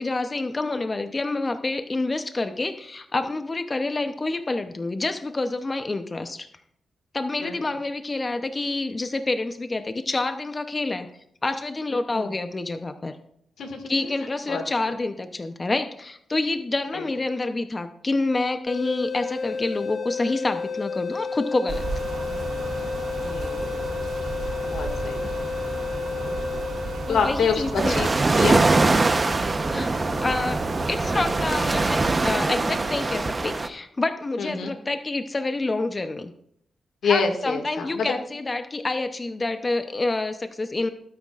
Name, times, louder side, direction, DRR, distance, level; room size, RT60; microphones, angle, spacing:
voice 1, 0.0-6.5 7.1-11.1 11.4-13.2 13.9-21.8 27.1-28.1 29.7-29.9 30.2-30.6 30.9-36.3 37.0-40.9, left 2 dB, 30° left, 8 dB, 0.7 m, -27 dB
voice 2, 13.6-14.1 14.5-14.6 16.9-17.1 23.2-23.7 24.6-25.2 27.1-28.1 28.4-28.6 34.4-34.7 37.0-38.1, left 5 dB, 85° left, 4 dB, 2.0 m, -26 dB
sound 1, 18.7-27.6, left 5 dB, 60° left, 0.5 m, -31 dB
sound 2, 21.7-32.3, right 3 dB, 70° right, 3.4 m, -33 dB
sound 3, 27.7-33.7, right 3 dB, 30° right, 0.9 m, -23 dB
20.5 x 9.4 x 2.5 m, 0.71 s
cardioid pair, 85°, 0 cm